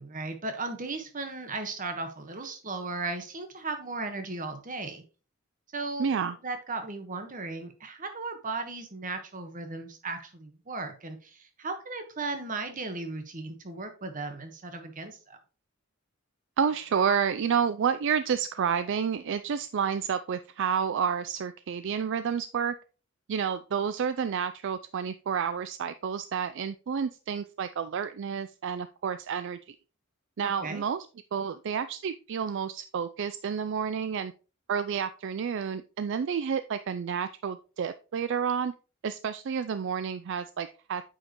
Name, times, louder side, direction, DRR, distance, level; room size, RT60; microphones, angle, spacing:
voice 1, 0.0-5.0 5.7-6.2 6.4-15.4 30.4-30.8, right 3 dB, 40° right, 7 dB, 1.3 m, -36 dB
voice 2, 6.0-6.4 16.6-22.7 23.3-29.7 30.4-31.1 31.3-34.3 34.7-38.7 39.0-41.0, right 7 dB, 60° right, 12 dB, 0.4 m, -30 dB
8.7 x 5.2 x 3.0 m, 0.34 s
head